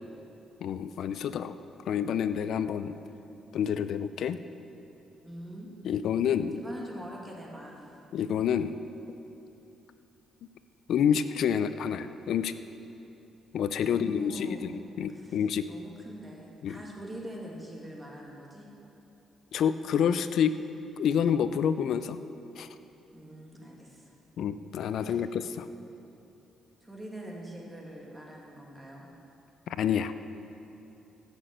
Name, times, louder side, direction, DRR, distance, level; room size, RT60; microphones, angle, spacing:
voice 1, 0.6-1.6 1.9-3.0 3.5-4.4 5.8-6.6 8.1-8.8 10.9-12.5 13.5-14.7 15.0-15.6 16.6-16.8 19.5-20.5 21.0-22.2 22.6-22.7 24.4-25.7 29.7-30.1, left 8 dB, 70° left, 12 dB, 0.5 m, -28 dB
voice 2, 5.2-5.7 6.5-8.0 13.8-14.7 15.1-15.4 15.7-18.7 23.1-24.1 26.8-29.1, equal, 10° right, -2 dB, 2.5 m, -43 dB
15.0 x 6.2 x 7.8 m, 2.9 s
cardioid pair, 90°, 0 cm